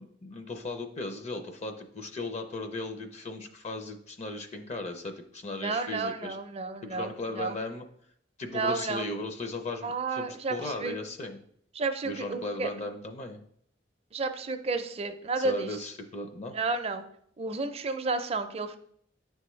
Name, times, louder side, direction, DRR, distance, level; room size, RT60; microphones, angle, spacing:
voice 1, 0.0-6.4 6.8-7.8 8.4-11.4 12.0-13.4 15.4-16.6, left 2 dB, 35° left, 6 dB, 0.5 m, -37 dB
voice 2, 5.6-7.6 8.5-9.1 9.8-11.0 11.7-12.7 14.1-15.7 16.5-17.0 17.4-18.8, right 3 dB, 35° right, 8 dB, 0.5 m, -31 dB
9.6 x 3.4 x 3.1 m, 0.66 s
head